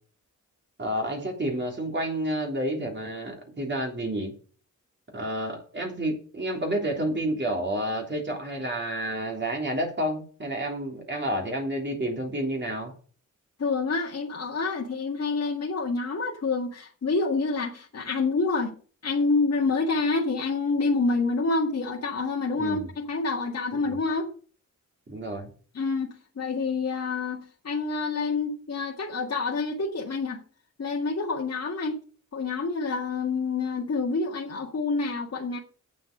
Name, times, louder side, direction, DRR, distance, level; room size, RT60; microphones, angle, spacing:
voice 1, 0.8-4.3 5.1-12.9 22.5-22.9 23.7-24.0 25.1-25.5, right 1 dB, 35° right, 1 dB, 3.3 m, -30 dB
voice 2, 13.6-18.8 19.0-24.3 25.7-26.1 26.4-30.4 30.8-32.0 32.3-35.6, left 3 dB, 55° left, -2 dB, 2.0 m, -27 dB
9.0 x 7.8 x 6.7 m, 0.41 s
wide cardioid pair, 85°, 31 cm